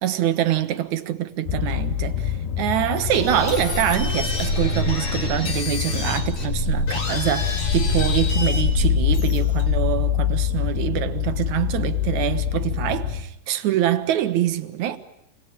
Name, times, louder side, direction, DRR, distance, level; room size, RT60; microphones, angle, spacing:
voice 1, 0.0-15.0, right 12 dB, 65° right, 2.2 m, -25 dB
sound 1, 1.5-13.2, left 10 dB, 90° left, 3.6 m, -25 dB
sound 2, 3.1-9.9, left 1 dB, 55° left, 5.1 m, -26 dB
27.5 x 20.0 x 9.0 m
omnidirectional pair, 4.1 m